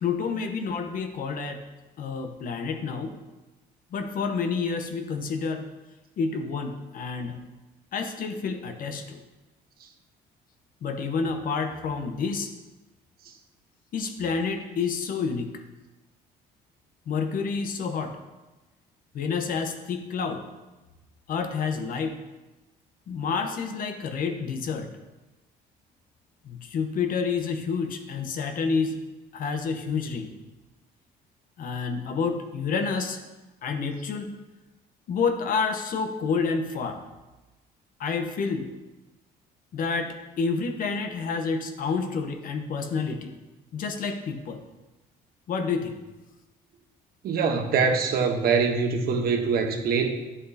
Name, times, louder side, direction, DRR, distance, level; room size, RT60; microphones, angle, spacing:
voice 1, 0.0-1.6 2.0-3.1 3.9-5.6 6.2-7.4 7.9-9.2 10.8-12.5 13.9-15.5 17.1-18.2 19.1-20.4 21.3-22.2 23.1-24.9 26.4-29.0 29.3-30.4 31.6-33.2 33.6-34.3 35.1-37.0 38.0-38.7 39.7-43.3 43.7-44.6 45.5-46.0, left 5 dB, 55° left, 6 dB, 0.9 m, -29 dB
voice 2, 47.2-50.1, right 5 dB, 65° right, 4 dB, 1.1 m, -23 dB
10.5 x 7.3 x 2.8 m, 1.1 s
cardioid pair, 110°, 17 cm